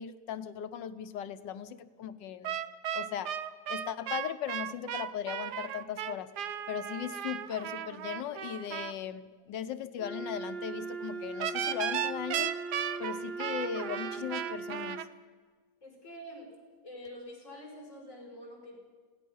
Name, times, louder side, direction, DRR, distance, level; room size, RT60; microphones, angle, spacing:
voice 1, 0.0-2.6 2.9-3.3 3.7-6.3 6.7-12.5 13.0-15.0, left 9 dB, 90° left, 11 dB, 1.5 m, -38 dB
sound 1, 2.4-8.9 11.4-15.1, right 10 dB, 70° right, 1.3 m, -35 dB
Wind instrument woodwind instrument, 10.0-15.1, right 3 dB, ahead, 1.0 m, -39 dB
voice 2, 15.8-16.5 16.8-18.8, equal, 45° left, -3 dB, 6.4 m, -46 dB
27.0 x 17.5 x 5.5 m, 1.5 s
omnidirectional pair, 1.9 m